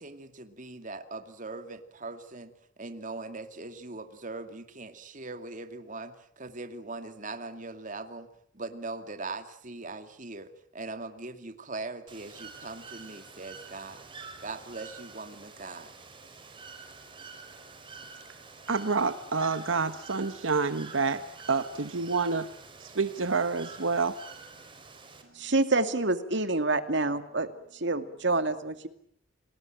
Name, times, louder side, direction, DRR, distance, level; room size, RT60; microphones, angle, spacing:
voice 1, 0.0-8.3 8.5-14.1 14.4-15.9, right 3 dB, 40° right, 8 dB, 2.4 m, -41 dB
Bird / Water, 12.1-25.2, right 4 dB, 25° right, 4.5 m, -48 dB
voice 2, 18.7-22.5 22.8-24.2, right 4 dB, 85° right, 11 dB, 1.2 m, -28 dB
voice 3, 25.3-28.9, right 2 dB, 65° right, 10 dB, 2.3 m, -27 dB
29.5 x 19.5 x 9.0 m, 0.67 s
head